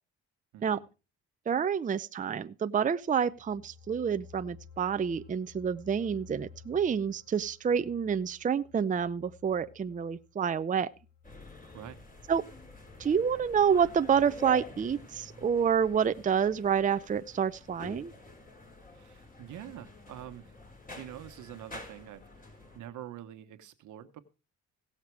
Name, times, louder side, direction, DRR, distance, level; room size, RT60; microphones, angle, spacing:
voice 1, 0.5-0.8 11.7-12.0 18.9-20.5 20.9-24.2, right 11 dB, 80° right, 1.3 m, -46 dB
voice 2, 1.5-10.9 12.3-12.5 13.0-18.1, right 7 dB, 25° right, 0.5 m, -28 dB
sound 1, 3.0-13.7 14.1-14.2, left 6 dB, 75° left, 6.3 m, -55 dB
sound 2, 11.2-22.8, left 2 dB, 25° left, 4.0 m, -48 dB
17.0 x 6.6 x 4.7 m
cardioid pair, 90°, 30 cm